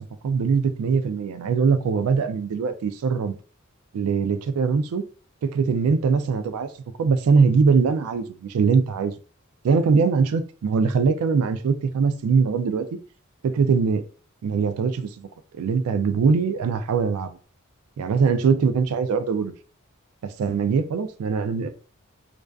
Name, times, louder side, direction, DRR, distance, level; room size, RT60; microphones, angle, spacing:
voice 1, 0.2-3.4 3.9-5.0 5.4-6.7 7.0-9.1 9.6-13.0 13.4-14.0 14.4-15.3 15.5-17.4 18.0-19.5 20.2-21.7, right 5 dB, 90° right, 0.3 m, -22 dB
2.4 x 2.2 x 2.3 m
head